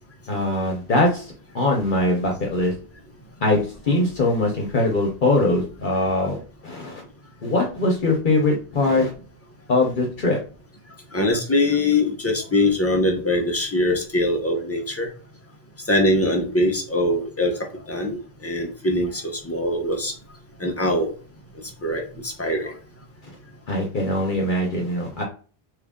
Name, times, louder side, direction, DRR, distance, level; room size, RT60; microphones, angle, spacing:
voice 1, 0.3-2.7 3.4-7.0 7.4-9.1 9.7-10.4 23.7-25.2, left 2 dB, 55° left, 0 dB, 0.9 m, -22 dB
voice 2, 11.1-15.1 15.9-17.5 17.9-18.2 18.4-20.1 20.6-21.1 21.8-22.7, left 1 dB, 15° left, 1 dB, 0.6 m, -22 dB
3.1 x 2.5 x 3.6 m, 0.39 s
omnidirectional pair, 1.1 m